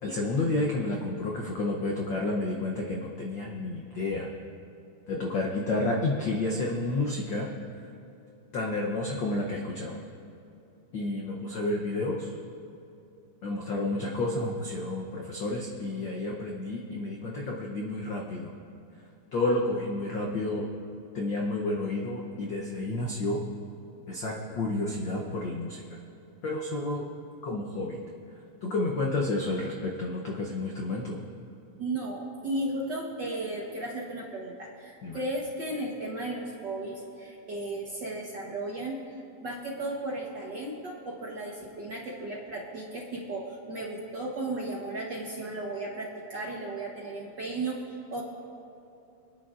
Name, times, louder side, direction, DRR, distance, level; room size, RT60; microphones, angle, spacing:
voice 1, 0.0-4.3 5.1-7.5 8.5-10.0 10.9-12.4 13.4-18.5 19.3-20.7 21.1-23.4 24.1-25.8 26.4-27.1 27.4-28.0 28.6-31.2 35.0-35.2, left 2 dB, 85° left, -1 dB, 1.0 m, -30 dB
voice 2, 31.8-48.2, right 2 dB, 55° right, -2 dB, 1.3 m, -35 dB
26.5 x 9.8 x 2.5 m, 2.8 s
omnidirectional pair, 3.5 m